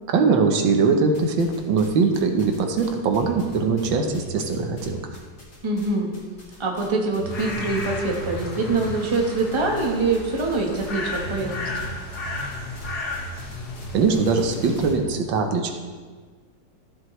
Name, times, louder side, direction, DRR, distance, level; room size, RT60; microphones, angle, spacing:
voice 1, 0.1-5.2 13.9-15.7, right 4 dB, 90° right, 4 dB, 1.7 m, -21 dB
sound 1, 1.1-1.9 2.1-5.9 6.1-6.9 7.1-14.9, equal, 45° left, 2.7 m, -37 dB
voice 2, 5.6-6.1 6.6-11.9, right 3 dB, 20° right, 0 dB, 1.0 m, -24 dB
sound 2, 7.3-14.9, left 2 dB, 60° left, 1.8 m, -35 dB
13.5 x 7.7 x 3.1 m, 1.5 s
omnidirectional pair, 2.0 m